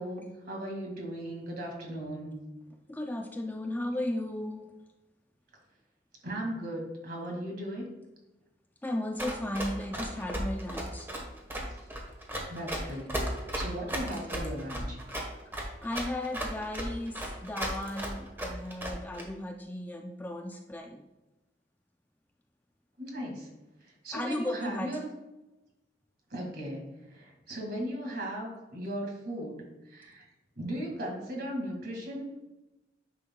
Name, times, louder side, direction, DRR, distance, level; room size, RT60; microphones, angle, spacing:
voice 1, 0.0-2.3 6.2-7.9 12.5-15.0 23.0-23.5 24.0-25.0 26.3-26.8 27.1-29.6 29.9-30.2 30.6-32.2, right 1 dB, 55° right, 0 dB, 2.1 m, -37 dB
voice 2, 2.7-4.7 8.8-11.1 15.8-21.1 24.1-25.0, left 1 dB, 10° left, 3 dB, 0.4 m, -35 dB
Run, 9.2-19.2, equal, 10° right, 1.2 m, -35 dB
9.6 x 6.3 x 2.3 m, 1.0 s
head